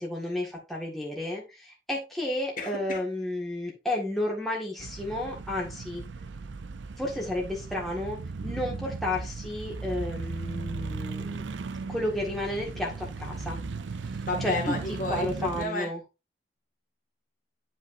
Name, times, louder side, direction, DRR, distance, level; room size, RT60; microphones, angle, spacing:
voice 1, 0.0-6.0 7.0-11.4 11.9-13.6 14.4-14.8 15.1-16.0, left 1 dB, ahead, -3 dB, 1.7 m, -32 dB
voice 2, 2.6-3.0 14.3-15.9, left 1 dB, 45° left, 2 dB, 2.0 m, -32 dB
sound 1, 4.8-15.7, right 4 dB, 75° right, 0.5 m, -37 dB
10.5 x 5.3 x 2.6 m, 0.26 s
head